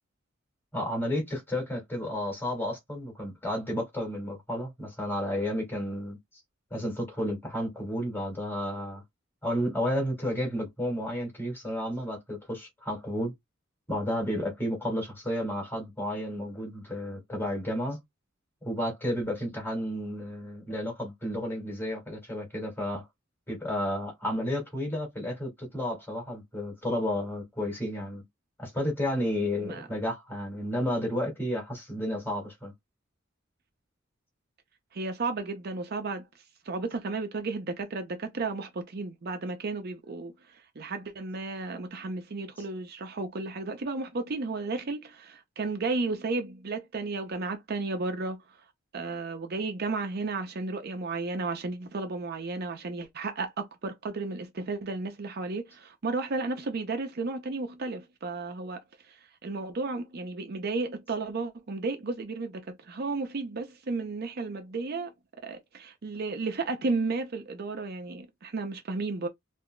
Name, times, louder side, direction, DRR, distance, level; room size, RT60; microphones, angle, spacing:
voice 1, 0.7-6.2 6.7-9.0 9.4-13.3 13.9-18.0 18.6-23.0 23.5-28.2 28.6-32.7, left 1 dB, 10° left, 2.0 m, -32 dB
voice 2, 34.9-36.2 36.7-48.4 48.9-65.1 65.4-69.3, right 3 dB, 50° right, 0.5 m, -33 dB
3.8 x 2.6 x 2.2 m
head